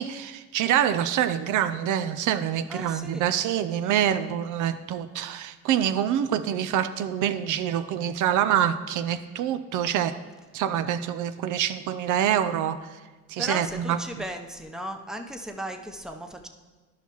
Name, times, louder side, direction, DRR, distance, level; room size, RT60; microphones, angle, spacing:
voice 1, 0.0-10.2 10.5-13.0 13.3-14.0, right 10 dB, 80° right, 11 dB, 0.5 m, -26 dB
voice 2, 2.7-3.3 13.4-16.5, right 1 dB, ahead, 4 dB, 0.7 m, -36 dB
12.0 x 5.7 x 3.0 m, 1.3 s
cardioid pair, 90°, 30 cm